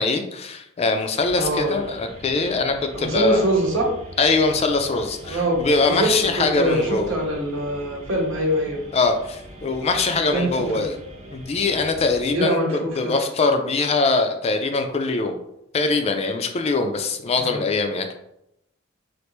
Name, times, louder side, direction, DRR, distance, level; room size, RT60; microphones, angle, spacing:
voice 1, 0.0-3.5 4.2-7.1 8.9-10.9 11.3-12.6 13.0-15.3 15.7-18.1, left 3 dB, 30° left, 6 dB, 0.3 m, -22 dB
sound 1, 1.2-12.3, right 1 dB, 35° right, 0.8 m, -42 dB
voice 2, 1.4-1.8 2.9-3.9 5.2-5.6 5.9-8.8 10.3-10.9 12.3-13.2 17.4-17.6, right 1 dB, 85° right, 0 dB, 0.9 m, -24 dB
3.2 x 2.5 x 3.0 m, 0.80 s
head